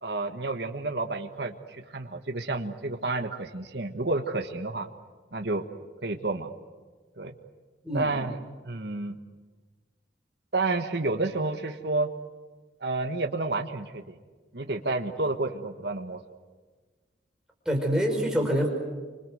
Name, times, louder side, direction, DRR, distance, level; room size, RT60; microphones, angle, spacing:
voice 1, 0.0-4.9 5.3-5.6 6.0-6.5 7.2-7.3 7.9-8.4 8.6-9.1 10.5-12.1 12.8-14.1 14.5-16.2, right 2 dB, 60° right, 5 dB, 1.5 m, -30 dB
voice 2, 17.7-18.7, equal, 5° right, 0 dB, 5.4 m, -25 dB
29.0 x 26.0 x 8.0 m, 1.4 s
head